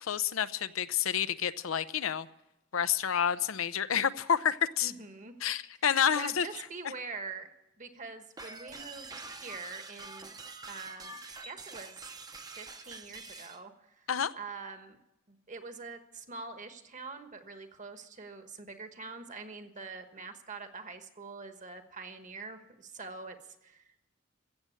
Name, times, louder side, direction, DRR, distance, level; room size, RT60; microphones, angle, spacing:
voice 1, 0.0-2.3 2.7-4.9 5.4-6.5 14.1-14.3, left 8 dB, 80° left, 13 dB, 0.6 m, -29 dB
voice 2, 4.8-5.3 6.1-7.5 7.8-10.4 10.7-12.0 12.5-14.1 14.3-15.0 15.3-24.0, right 4 dB, 40° right, 8 dB, 1.3 m, -44 dB
sound 1, 8.4-13.6, right 3 dB, 20° right, 0.7 m, -46 dB
15.5 x 7.6 x 9.8 m, 0.91 s
head